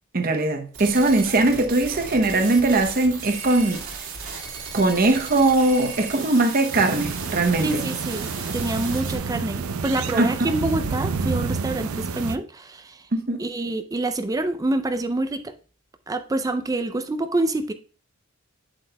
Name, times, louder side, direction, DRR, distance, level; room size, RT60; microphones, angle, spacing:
voice 1, 0.1-3.8 4.7-7.8 10.1-10.5 13.1-13.4, right 2 dB, 45° right, 0.8 m, -20 dB
sound 1, 0.7-9.2, right 5 dB, 70° right, 2.0 m, -35 dB
sound 2, 6.7-12.4, right 4 dB, 90° right, 0.6 m, -29 dB
voice 2, 7.6-13.1 13.4-15.5 16.1-17.7, right 2 dB, 15° right, 0.4 m, -27 dB
8.3 x 7.9 x 2.2 m
head